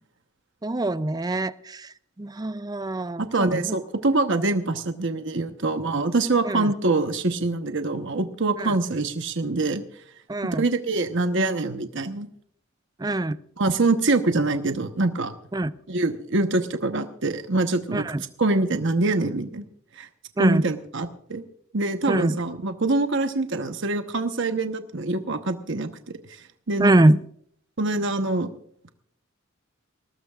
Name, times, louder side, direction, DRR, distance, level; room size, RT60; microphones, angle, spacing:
voice 1, 0.6-3.8 6.5-6.7 8.6-8.8 10.3-10.7 13.0-13.4 15.5-15.7 17.9-18.2 20.4-20.6 22.1-22.4 26.8-27.2, right 2 dB, 20° right, 15 dB, 0.4 m, -24 dB
voice 2, 3.2-9.8 10.4-12.3 13.6-15.3 15.9-18.1 18.4-19.6 20.0-20.1 20.4-21.4 21.7-25.9 26.3-26.9 27.8-28.5, right 2 dB, 60° right, 7 dB, 1.0 m, -24 dB
21.5 x 18.5 x 2.4 m, 0.64 s
head